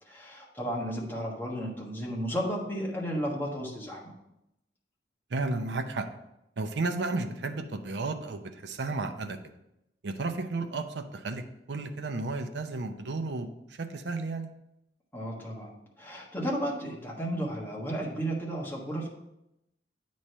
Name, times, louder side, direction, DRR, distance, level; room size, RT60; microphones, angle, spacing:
voice 1, 0.1-4.1 15.1-15.7 16.0-19.1, equal, 10° left, -3 dB, 1.4 m, -33 dB
voice 2, 5.3-6.1 6.6-9.4 10.0-13.5 13.8-14.5, right 3 dB, 75° right, 8 dB, 0.6 m, -33 dB
8.6 x 3.2 x 5.4 m, 0.86 s
head